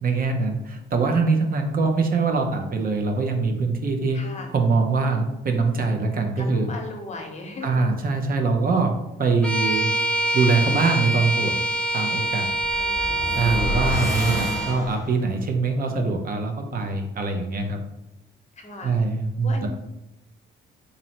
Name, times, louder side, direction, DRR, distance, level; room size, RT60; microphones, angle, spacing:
voice 1, 0.0-4.2 4.5-6.7 7.6-9.9 10.3-11.6 11.9-12.5 13.3-17.8 18.8-19.7, right 4 dB, 45° right, 4 dB, 0.6 m, -23 dB
voice 2, 4.1-4.5 6.4-7.8 12.7-13.3 14.0-14.6 18.6-19.0 19.4-19.7, left 2 dB, 35° left, 3 dB, 0.8 m, -38 dB
Bowed string instrument, 9.4-14.8, right 1 dB, 5° left, 0.5 m, -25 dB
sound 1, 12.5-15.3, equal, 15° right, 1.3 m, -29 dB
2.9 x 2.6 x 4.1 m, 0.90 s
cardioid pair, 90°, 20 cm